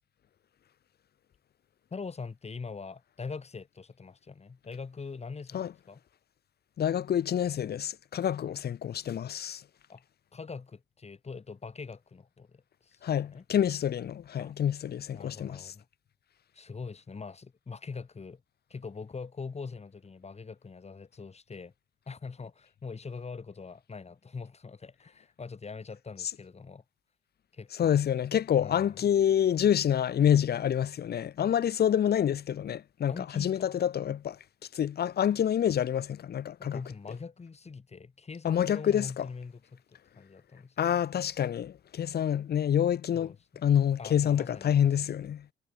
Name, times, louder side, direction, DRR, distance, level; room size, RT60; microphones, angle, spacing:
voice 1, 1.9-6.0 9.9-10.0 10.3-13.4 14.4-14.6 15.1-15.9 16.5-18.4 18.7-21.7 22.1-26.8 27.5-28.0 28.6-29.1 33.1-33.6 36.6-41.0 43.1-45.1, left 4 dB, 30° left, 5.5 m, -43 dB
voice 2, 6.8-9.6 13.0-15.7 27.8-34.4 34.7-36.8 38.4-39.3 40.8-43.3 43.6-45.4, left 9 dB, 55° left, 1.0 m, -27 dB
cardioid pair, 90°, 20 cm